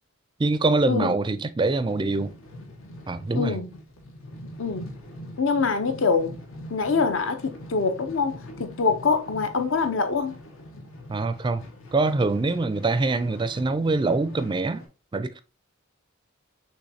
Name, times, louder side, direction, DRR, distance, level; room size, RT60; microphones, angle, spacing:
voice 1, 0.4-2.3 3.1-3.6 11.1-11.6 11.9-14.8 15.1-15.4, right 3 dB, 25° right, 0.4 m, -24 dB
sound 1, 1.6-14.9, left 1 dB, 85° left, 1.1 m, -43 dB
voice 2, 3.3-3.7 4.6-4.9 5.4-6.3 6.7-10.4, left 4 dB, 70° left, 0.7 m, -24 dB
6.3 x 3.1 x 2.7 m
head